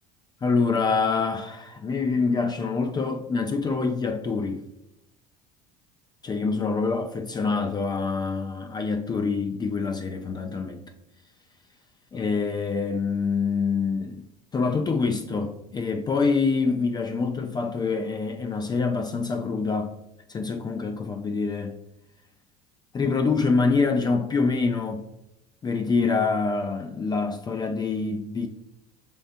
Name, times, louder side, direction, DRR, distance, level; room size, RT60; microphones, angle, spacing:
voice 1, 0.4-4.6 6.2-10.8 12.1-14.3 14.5-19.9 20.3-21.7 22.9-25.0 25.6-28.5, left 4 dB, 20° left, 0.3 m, -25 dB
5.2 x 3.3 x 2.5 m
supercardioid pair, 90°, 19 cm